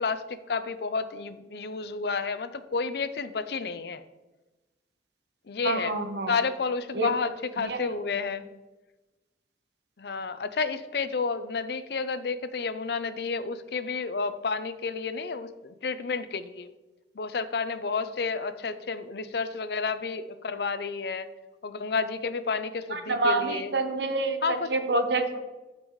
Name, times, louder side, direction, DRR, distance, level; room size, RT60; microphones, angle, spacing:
voice 1, 0.0-4.0 5.5-5.9 6.3-8.5 10.0-16.7 17.2-21.3 21.6-23.7 24.4-24.7, left 4 dB, 60° left, 12 dB, 0.5 m, -31 dB
voice 2, 5.6-6.3 6.9-7.1 7.6-7.8 22.9-25.4, right 2 dB, 70° right, 6 dB, 1.1 m, -27 dB
14.0 x 5.4 x 3.1 m, 1.1 s
head